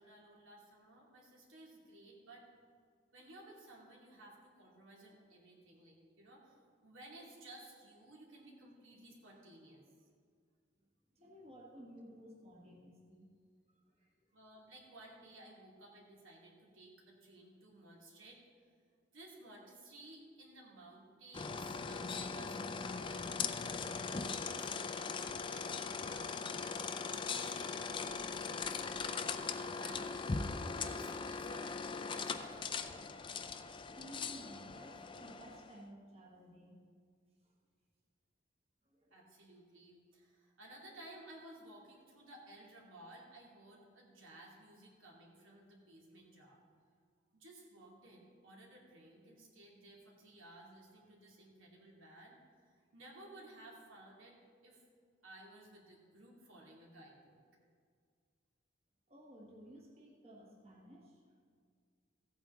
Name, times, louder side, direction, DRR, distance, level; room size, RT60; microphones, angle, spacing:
voice 1, 0.0-2.4 3.1-9.8 14.3-18.4 19.1-26.4 27.1-30.1 30.8-33.1 39.1-46.6 47.3-54.8 55.2-57.4, right 1 dB, 80° right, -3 dB, 2.5 m, -57 dB
voice 2, 11.1-13.3 13.7-14.4 33.9-36.8 37.4-37.5 38.8-39.2 59.1-61.3, equal, 30° right, -3 dB, 1.4 m, -55 dB
sound 1, 21.3-35.8, left 5 dB, 25° left, 0.4 m, -40 dB
15.5 x 8.7 x 3.7 m, 2.1 s
head